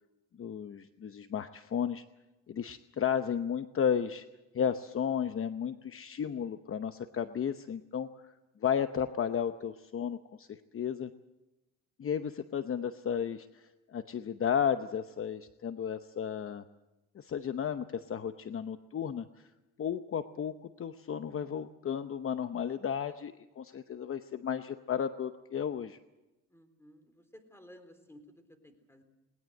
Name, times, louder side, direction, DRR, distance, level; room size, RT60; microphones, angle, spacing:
voice 1, 0.4-2.0 2.5-4.3 4.5-8.3 8.6-11.1 12.0-16.6 17.1-19.5 19.8-26.0, left 8 dB, 45° left, 10 dB, 0.9 m, -33 dB
voice 2, 26.5-29.0, equal, 10° left, 9 dB, 3.8 m, -56 dB
20.5 x 19.5 x 7.8 m, 1.0 s
cardioid pair, 90°, 30 cm